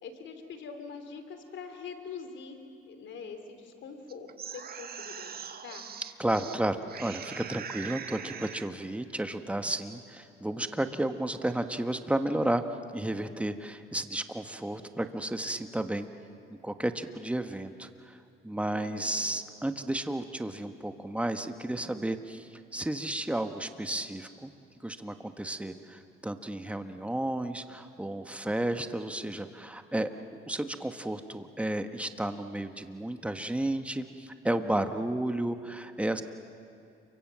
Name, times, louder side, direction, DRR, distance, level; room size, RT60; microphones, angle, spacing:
voice 1, 0.0-2.6 2.9-5.8 18.7-19.4, left 5 dB, 70° left, 7 dB, 3.1 m, -44 dB
sound 1, 4.1-6.6 6.9-8.7, right 7 dB, 50° right, 1.4 m, -42 dB
voice 2, 6.2-12.6 12.9-16.1 16.5-18.2 18.4-24.5 24.8-36.2, right 1 dB, 5° right, 8 dB, 1.4 m, -32 dB
29.5 x 24.5 x 7.6 m, 2.6 s
cardioid pair, 90°, 20 cm